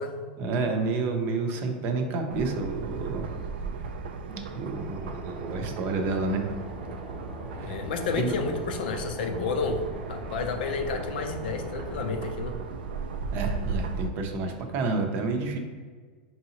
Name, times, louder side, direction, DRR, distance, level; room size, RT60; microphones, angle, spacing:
voice 1, 0.4-3.2 4.3-6.5 7.6-7.8 8.2-8.4 13.3-15.6, right 3 dB, 40° right, 4 dB, 0.6 m, -29 dB
sound 1, 2.3-14.1, right 4 dB, 85° right, 0.3 m, -36 dB
sound 2, 4.7-12.3, equal, ahead, 0.8 m, -42 dB
voice 2, 7.6-9.8 10.1-12.6, left 4 dB, 75° left, 5 dB, 0.5 m, -30 dB
4.6 x 2.8 x 2.8 m, 1.5 s
supercardioid pair, 130°, 5 cm